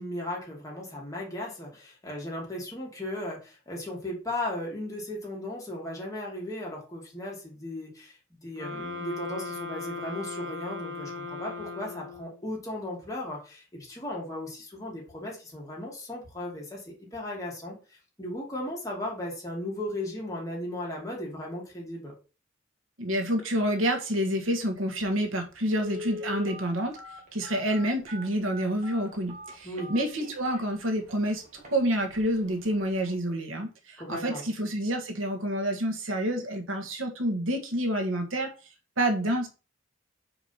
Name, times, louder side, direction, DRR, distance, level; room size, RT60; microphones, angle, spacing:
voice 1, 0.0-22.1 29.6-29.9 34.0-34.4, left 1 dB, 15° left, 2.5 m, -36 dB
sound 1, 8.6-12.4, left 3 dB, 70° right, 2.0 m, -38 dB
voice 2, 23.0-27.0 27.3-31.4 31.7-38.5 39.0-39.5, right 1 dB, 90° right, 1.6 m, -28 dB
Telephone, 25.0-25.1 25.7-30.6 31.1-31.2 31.6-31.8 32.1-32.4 32.7-32.8, left 2 dB, 40° right, 2.0 m, -40 dB
5.1 x 4.8 x 5.6 m
head